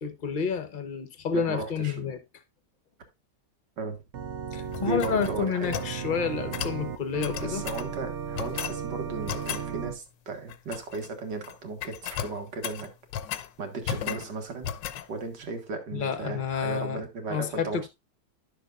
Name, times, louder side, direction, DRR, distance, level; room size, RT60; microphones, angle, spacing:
voice 1, 0.0-2.2 4.5-7.6 15.9-17.9, left 6 dB, 35° left, 0.9 m, -30 dB
voice 2, 1.3-2.1 3.8-4.0 4.8-5.7 7.4-12.9 13.6-14.7 15.1-17.8, right 4 dB, 75° right, 2.3 m, -35 dB
Organ, 4.1-9.9, right 7 dB, 55° right, 0.8 m, -35 dB
sound 1, 4.7-6.0 6.5-6.8 7.2-7.9 8.4-8.8 9.3-9.7 10.5-11.1 11.3-11.6 11.8-13.5 13.8-14.3 14.6-15.1, left 10 dB, 90° left, 1.4 m, -35 dB
11.5 x 6.6 x 2.5 m
omnidirectional pair, 1.9 m